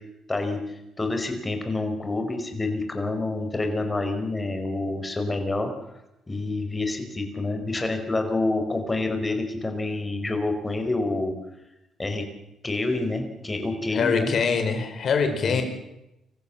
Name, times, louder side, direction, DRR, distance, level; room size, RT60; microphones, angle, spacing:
voice 1, 0.3-5.7 6.3-11.3 12.0-12.3 12.6-14.3 15.4-15.6, left 2 dB, 20° left, 6 dB, 5.0 m, -28 dB
voice 2, 13.9-15.6, left 5 dB, 60° left, 6 dB, 4.9 m, -23 dB
26.0 x 15.0 x 7.3 m, 0.89 s
cardioid pair, 90°, 0 cm